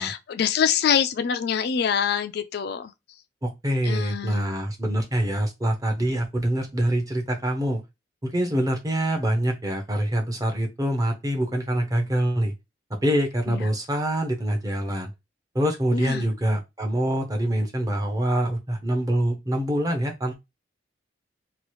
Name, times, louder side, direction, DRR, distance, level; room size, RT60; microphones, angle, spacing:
voice 1, 0.0-2.9 3.9-4.6 13.5-13.7 15.9-16.3, left 7 dB, 60° left, 0.4 m, -25 dB
voice 2, 3.4-7.8 8.2-12.5 13.0-15.1 15.5-20.4, right 1 dB, 20° right, 0.7 m, -25 dB
2.9 x 2.3 x 3.0 m
head